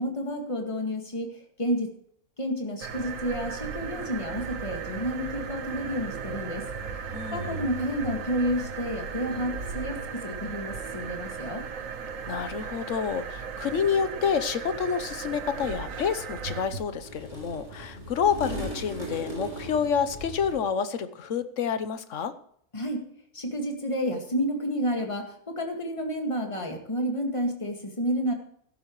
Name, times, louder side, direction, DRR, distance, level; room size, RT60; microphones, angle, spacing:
voice 1, 0.0-1.9 2.4-6.6 7.3-11.6 22.7-23.0 23.3-28.3, equal, 20° left, 2 dB, 2.0 m, -30 dB
sound 1, 2.8-16.9, right 6 dB, 60° right, 1.4 m, -36 dB
voice 2, 7.1-7.6 12.2-22.3, left 7 dB, 60° left, 11 dB, 1.2 m, -28 dB
sound 2, 15.2-20.6, right 1 dB, 45° right, 3.8 m, -39 dB
15.0 x 12.0 x 3.1 m, 0.65 s
omnidirectional pair, 1.6 m